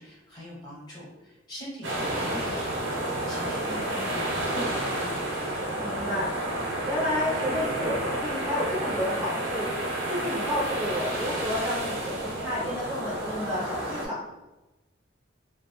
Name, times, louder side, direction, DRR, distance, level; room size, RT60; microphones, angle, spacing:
voice 1, 0.0-3.0 3.3-5.1, equal, 20° left, -5 dB, 0.9 m, -41 dB
sound 1, 1.8-14.1, right 1 dB, 85° right, 0.7 m, -30 dB
voice 2, 5.8-6.3 6.8-9.7 10.1-14.2, left 1 dB, 10° right, -7 dB, 0.5 m, -31 dB
2.7 x 2.0 x 2.9 m, 1.1 s
head